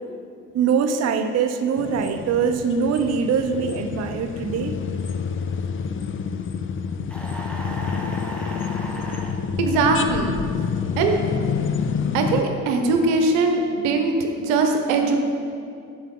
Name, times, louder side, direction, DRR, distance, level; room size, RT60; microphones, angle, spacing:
voice 1, 0.5-4.7, right 6 dB, 40° right, 7 dB, 0.6 m, -23 dB
sound 1, 1.8-12.4, left 6 dB, 30° left, 0.5 m, -28 dB
sound 2, 7.1-9.4, equal, 5° left, 1.2 m, -35 dB
voice 2, 9.6-10.4 11.0-11.2 11.9-15.2, right 3 dB, 80° right, 4 dB, 0.9 m, -21 dB
8.9 x 6.8 x 3.6 m, 2.4 s
hypercardioid pair, 55°, 41 cm